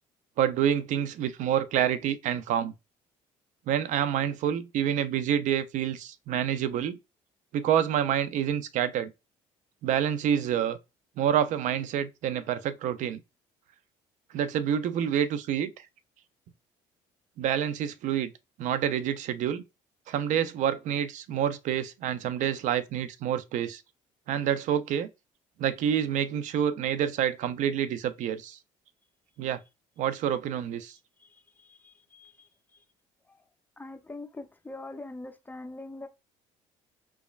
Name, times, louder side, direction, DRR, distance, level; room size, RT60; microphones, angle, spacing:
voice 1, 0.4-2.7 3.7-7.0 7.5-9.1 9.8-10.8 11.2-13.2 14.3-15.7 17.4-18.3 18.6-19.6 20.1-23.8 24.3-25.1 25.6-28.6 29.4-29.6 30.0-30.9, right 9 dB, 65° right, 0.4 m, -27 dB
voice 2, 31.2-32.5 33.8-36.1, left 2 dB, 15° left, 0.5 m, -43 dB
2.9 x 2.3 x 2.3 m
supercardioid pair, 75°, 14 cm